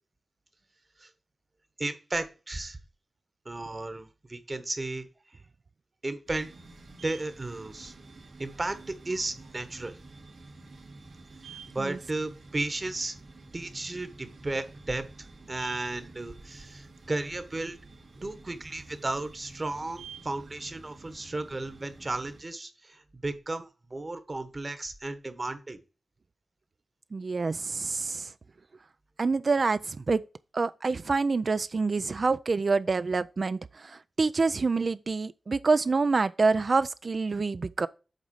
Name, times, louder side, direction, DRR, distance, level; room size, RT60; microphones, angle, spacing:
voice 1, 1.8-2.8 3.4-5.0 6.0-6.5 7.0-7.9 8.4-9.9 11.7-13.1 13.5-17.8 18.2-25.8, right 2 dB, 35° right, 1.2 m, -34 dB
sound 1, 6.3-22.4, right 3 dB, 80° right, 2.4 m, -49 dB
voice 2, 27.1-28.3 29.2-30.2 30.5-37.9, right 4 dB, 50° right, 0.3 m, -27 dB
8.0 x 4.0 x 5.4 m
wide cardioid pair, 90°, 0 cm